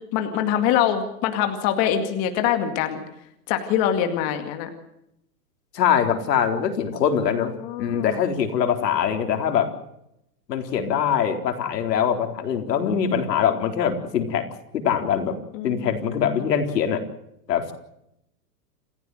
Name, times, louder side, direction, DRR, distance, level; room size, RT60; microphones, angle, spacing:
voice 1, 0.1-3.0 3.5-4.7 7.4-8.3 15.5-16.4, left 10 dB, 30° left, 7 dB, 2.2 m, -24 dB
voice 2, 5.7-7.5 7.8-9.7 10.5-14.5 14.7-15.4 15.6-17.0 17.5-17.7, left 8 dB, 85° left, 5 dB, 4.1 m, -23 dB
28.5 x 15.5 x 7.9 m, 0.81 s
supercardioid pair, 170°, 48 cm